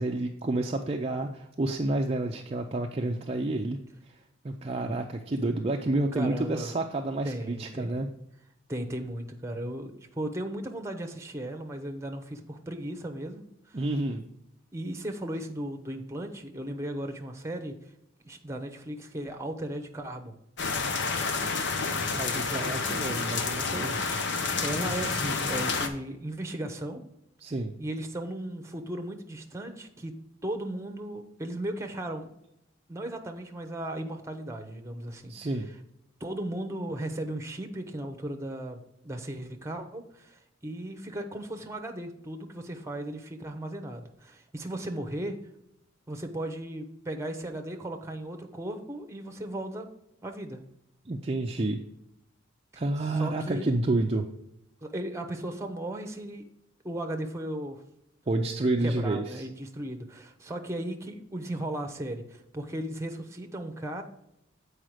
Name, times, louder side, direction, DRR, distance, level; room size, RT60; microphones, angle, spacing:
voice 1, 0.0-3.8 4.4-8.1 13.7-14.2 21.9-24.2 27.4-27.7 35.3-35.7 51.1-51.8 52.8-54.3 58.3-59.5, right 2 dB, 30° right, 2 dB, 0.5 m, -29 dB
voice 2, 6.1-6.7 7.2-8.0 8.7-13.8 14.7-17.7 18.2-20.3 22.1-23.3 24.6-27.0 27.8-30.1 30.4-32.3 32.9-35.6 36.2-45.4 46.1-49.9 50.2-50.6 53.2-53.6 54.8-56.4 56.8-57.8 58.4-64.0, right 1 dB, 15° right, 5 dB, 0.9 m, -36 dB
sound 1, 20.6-25.9, left 4 dB, 60° left, 0.8 m, -29 dB
7.6 x 4.9 x 4.9 m, 0.80 s
head